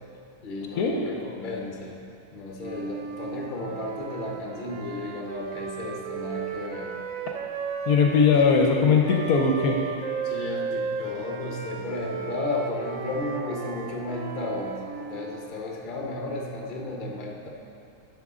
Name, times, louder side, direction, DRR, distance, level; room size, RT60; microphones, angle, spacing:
voice 1, 0.4-2.0 2.3-6.9 10.2-17.5, left 2 dB, 40° left, 0 dB, 0.9 m, -33 dB
Wind instrument woodwind instrument, 2.6-8.3 9.0-15.5, right 6 dB, 65° right, 0.9 m, -35 dB
voice 2, 7.9-9.8, left 5 dB, 70° left, 1 dB, 1.1 m, -20 dB
11.0 x 6.4 x 3.6 m, 2.7 s
omnidirectional pair, 1.7 m